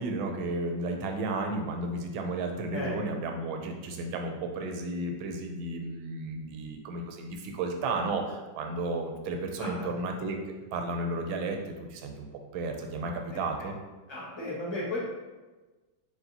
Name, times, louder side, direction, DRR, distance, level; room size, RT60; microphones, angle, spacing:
voice 1, 0.0-10.4 10.7-12.3 12.5-13.7, right 2 dB, 90° right, 3 dB, 1.4 m, -33 dB
voice 2, 9.6-10.3 13.3-13.4 14.1-15.0, left 2 dB, 30° left, -6 dB, 0.5 m, -36 dB
3.6 x 2.6 x 3.9 m, 1.2 s
omnidirectional pair, 2.1 m